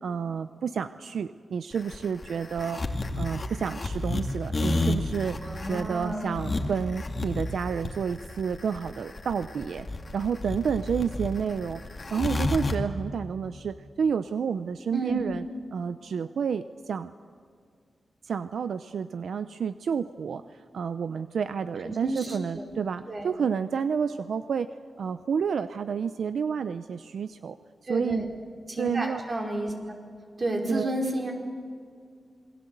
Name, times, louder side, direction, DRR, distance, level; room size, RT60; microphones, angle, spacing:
voice 1, 0.0-2.8 3.2-5.4 5.7-9.9 10.1-11.8 12.1-15.4 15.7-17.1 18.2-24.7 25.0-27.6 27.9-28.3 28.8-29.2 30.7-30.9, right 6 dB, 85° right, 11 dB, 0.6 m, -30 dB
sound 1, 1.7-12.7, left 2 dB, 40° left, 2.3 m, -30 dB
voice 2, 5.4-6.4 14.9-15.2 21.8-22.6 23.1-23.3 27.8-28.2 28.7-30.0 30.4-31.3, right 1 dB, 40° right, 2 dB, 5.0 m, -31 dB
27.5 x 22.0 x 8.1 m, 2.1 s
wide cardioid pair, 95°, 0 cm